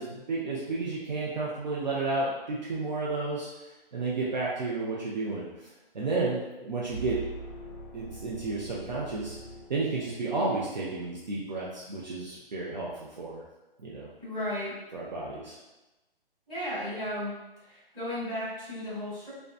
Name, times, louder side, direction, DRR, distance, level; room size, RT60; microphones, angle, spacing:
voice 1, 0.0-3.5 3.9-5.5 5.9-7.2 7.9-9.4 9.7-13.4 13.8-14.1 14.9-15.6, right 3 dB, 50° right, -6 dB, 0.4 m, -32 dB
sound 1, 6.9-10.3, right 3 dB, 35° left, 0.8 m, -42 dB
voice 2, 14.2-14.7 16.5-17.3 17.6-19.3, left 1 dB, ahead, -24 dB, 1.1 m, -34 dB
2.6 x 2.1 x 2.3 m, 1.0 s
hypercardioid pair, 175°, 29 cm